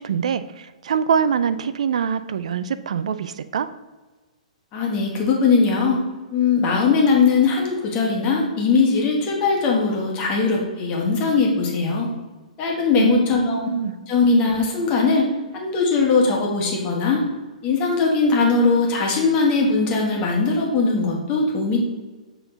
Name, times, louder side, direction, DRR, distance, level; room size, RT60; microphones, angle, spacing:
voice 1, 0.0-3.7 13.0-14.0, right 7 dB, 60° right, 13 dB, 0.4 m, -24 dB
voice 2, 4.7-6.0 6.3-12.1 12.6-13.6 14.0-15.2 15.5-17.2 17.6-21.8, left 4 dB, 25° left, -1 dB, 1.5 m, -20 dB
6.7 x 3.7 x 3.9 m, 1.2 s
figure-of-eight pair, 115°, 4 cm